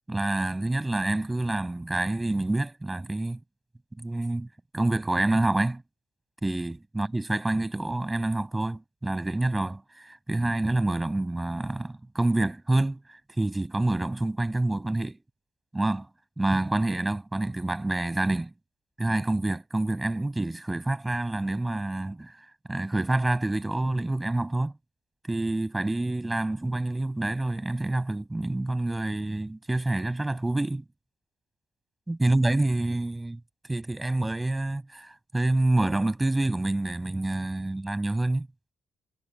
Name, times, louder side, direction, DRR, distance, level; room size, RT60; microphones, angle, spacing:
voice 1, 0.1-3.4 4.0-4.5 4.7-5.8 6.4-15.2 15.7-16.1 16.4-18.5 19.0-22.3 22.7-24.7 25.3-30.8 32.1-33.4 33.7-38.5, right 2 dB, 15° right, 6.6 m, -27 dB
cardioid pair, 90°, 0 cm